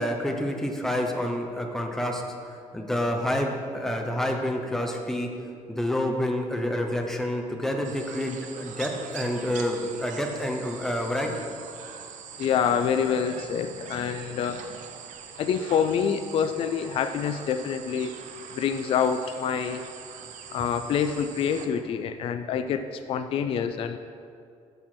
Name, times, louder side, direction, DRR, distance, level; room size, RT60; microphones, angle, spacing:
voice 1, 0.0-2.2 2.7-5.3 5.7-11.3, left 1 dB, 5° left, 2 dB, 0.8 m, -28 dB
sound 1, 7.8-21.7, right 7 dB, 70° right, 0.7 m, -43 dB
voice 2, 12.4-14.6 15.4-18.1 18.6-19.8 20.5-24.0, left 7 dB, 45° left, 9 dB, 0.4 m, -26 dB
13.0 x 4.5 x 4.4 m, 2.3 s
cardioid pair, 155°, 13 cm